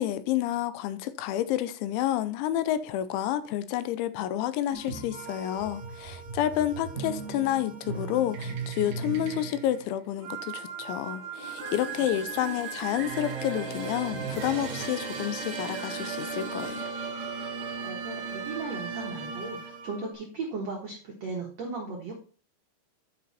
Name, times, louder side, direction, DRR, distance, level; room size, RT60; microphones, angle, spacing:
voice 1, 0.0-16.9, left 12 dB, 85° left, 3.0 m, -29 dB
sound 1, 4.7-20.1, right 5 dB, 55° right, 2.1 m, -37 dB
sound 2, 11.4-19.2, right 2 dB, 30° right, 3.6 m, -44 dB
voice 2, 17.6-22.2, right 4 dB, 85° right, 1.4 m, -37 dB
10.0 x 5.4 x 4.2 m
omnidirectional pair, 5.4 m